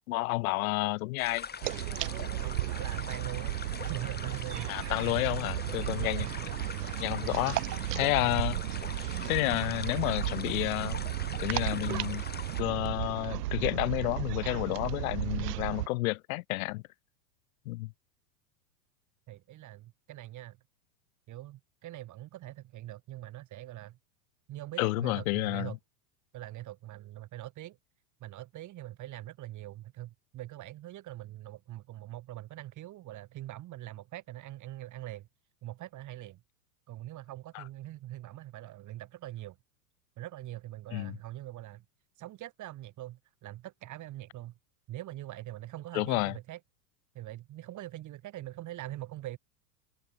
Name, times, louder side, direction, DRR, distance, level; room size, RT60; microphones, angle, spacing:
voice 1, 0.1-1.5 4.7-6.3 7.0-7.6 7.9-8.6 9.3-11.0 11.4-12.2 12.6-16.8 17.6-17.9 24.8-25.7 37.5-37.6 40.9-41.2 45.9-46.3, left 22 dB, 60° left, 3.2 m, -30 dB
sound 1, 1.2-12.6, left 6 dB, 20° left, 5.4 m, -43 dB
sound 2, 1.6-15.9, right 16 dB, 80° right, 0.7 m, -34 dB
voice 2, 2.4-5.3 5.8-6.5 19.3-20.6 21.3-24.0 24.5-25.8 26.3-27.8 28.2-35.3 35.6-36.4 36.9-39.6 40.2-41.8 42.2-44.5 44.9-46.6 47.2-49.4, right 15 dB, 40° right, 7.0 m, -43 dB
hypercardioid pair, 110°, 47 cm